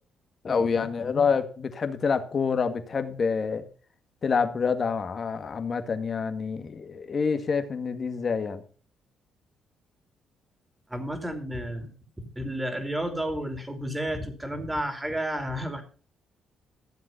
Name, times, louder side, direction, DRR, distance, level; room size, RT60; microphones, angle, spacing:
voice 1, 0.4-3.6 4.2-8.6 11.8-11.9, left 5 dB, 45° left, 8 dB, 1.9 m, -27 dB
voice 2, 10.9-11.9 12.2-15.8, equal, 10° right, 7 dB, 3.4 m, -31 dB
14.5 x 7.5 x 5.9 m, 0.41 s
cardioid pair, 90°, 0 cm